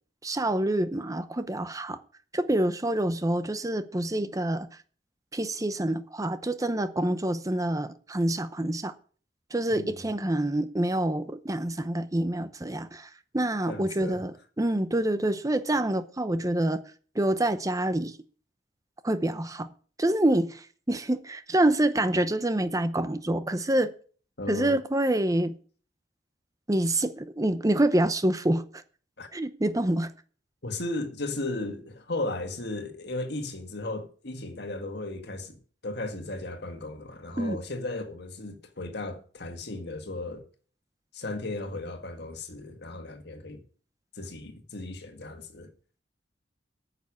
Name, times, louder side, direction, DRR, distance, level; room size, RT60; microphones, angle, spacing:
voice 1, 0.2-2.0 2.3-4.7 5.3-8.9 9.5-16.8 17.1-18.2 19.0-19.7 20.0-23.9 24.5-25.5 26.7-28.8 29.3-30.1 37.4-37.6, right 1 dB, 20° right, 0.7 m, -27 dB
voice 2, 13.7-14.2 24.4-24.8 29.2-29.3 30.6-35.6 35.8-40.4 41.1-43.6 44.1-45.7, left 2 dB, 60° left, 1.7 m, -35 dB
9.5 x 6.8 x 8.4 m
head